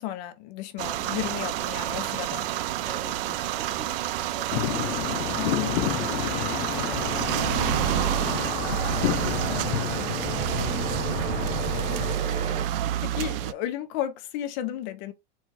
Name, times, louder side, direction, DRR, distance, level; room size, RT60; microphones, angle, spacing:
voice 1, 0.0-2.5 5.4-6.0 12.2-15.1, left 12 dB, 40° left, 0.7 m, -34 dB
sound 1, 0.8-13.5, right 13 dB, 55° right, 0.5 m, -29 dB
voice 2, 2.7-8.4 8.8-11.2, left 1 dB, 5° left, 0.5 m, -45 dB
sound 2, 4.5-12.2, left 13 dB, 85° left, 0.7 m, -30 dB
sound 3, 6.0-12.7, right 5 dB, 20° right, 0.8 m, -38 dB
4.3 x 2.4 x 4.6 m
supercardioid pair, 170°, 34 cm